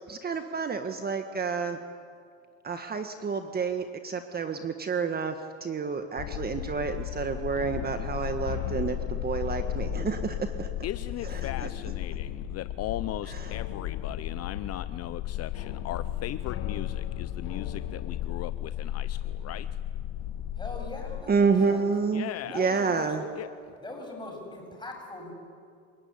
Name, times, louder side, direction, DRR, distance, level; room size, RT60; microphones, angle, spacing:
voice 1, 0.0-1.8 2.6-5.3 5.6-10.7 11.2-11.7 13.3-13.4 21.3-22.3 22.5-23.2, right 5 dB, 30° right, 1.6 m, -29 dB
sound 1, 6.2-21.2, left 11 dB, 70° left, 1.5 m, -34 dB
voice 2, 10.8-19.7 22.1-22.6 23.4-23.5, left 13 dB, 50° left, 0.8 m, -38 dB
voice 3, 20.6-21.9 22.5-23.1 23.8-25.3, left 2 dB, 15° left, 7.9 m, -40 dB
28.5 x 17.5 x 9.8 m
supercardioid pair, 100°, 33 cm